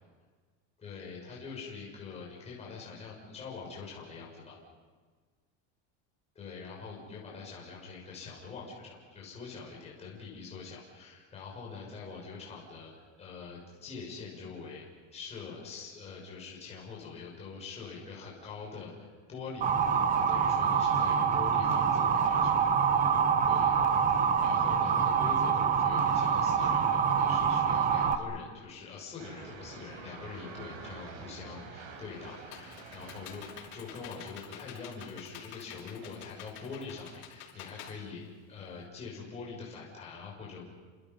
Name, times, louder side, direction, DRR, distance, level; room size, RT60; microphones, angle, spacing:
voice 1, 0.8-4.6 6.3-14.8 15.1-22.6 23.4-23.7 24.2-40.6, left 5 dB, 20° left, -4 dB, 6.5 m, -44 dB
Motor vehicle (road) / Siren, 19.6-28.1, right 7 dB, 20° right, 1.3 m, -26 dB
sound 1, 29.2-34.3, right 4 dB, 85° right, 7.0 m, -47 dB
Computer keyboard, 32.0-38.8, left 9 dB, 75° left, 6.2 m, -49 dB
30.0 x 26.5 x 5.6 m, 1.5 s
cardioid pair, 175°, 35 cm